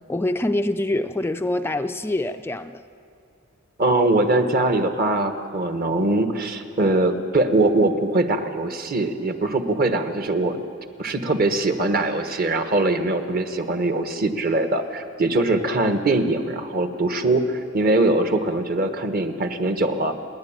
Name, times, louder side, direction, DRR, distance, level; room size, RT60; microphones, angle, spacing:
voice 1, 0.1-2.8, left 1 dB, 10° left, 7 dB, 0.4 m, -25 dB
voice 2, 3.8-10.6 11.0-20.1, right 2 dB, 50° right, 7 dB, 1.3 m, -22 dB
29.0 x 11.0 x 8.8 m, 2.6 s
head